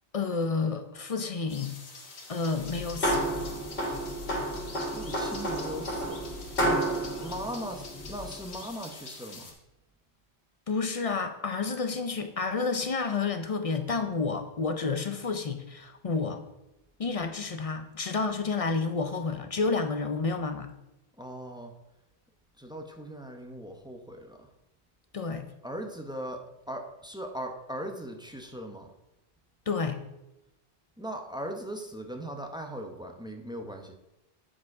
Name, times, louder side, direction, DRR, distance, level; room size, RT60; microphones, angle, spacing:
voice 1, 0.1-1.8 2.3-3.3 10.7-16.4 17.0-20.7 25.1-25.5 29.7-30.0, left 4 dB, 40° left, 7 dB, 0.6 m, -30 dB
sound 1, 1.5-9.5, left 3 dB, 85° left, 1.5 m, -46 dB
sound 2, 2.6-8.4, right 1 dB, 60° left, 2.1 m, -31 dB
voice 2, 4.9-6.2 6.6-6.8 7.2-9.5 21.2-21.7 22.6-24.5 25.6-28.9 31.0-33.9, right 1 dB, 5° right, 3 dB, 0.7 m, -39 dB
8.6 x 5.1 x 4.7 m, 0.93 s
omnidirectional pair, 1.1 m